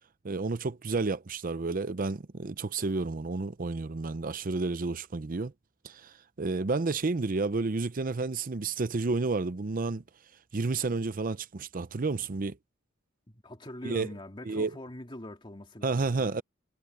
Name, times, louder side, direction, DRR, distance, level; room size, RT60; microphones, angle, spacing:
voice 1, 0.2-5.5 5.8-10.0 10.5-12.6 13.8-14.1 14.5-14.7 15.8-16.4, right 3 dB, 40° right, 0.6 m, -31 dB
voice 2, 13.4-16.4, left 1 dB, 25° left, 2.4 m, -43 dB
head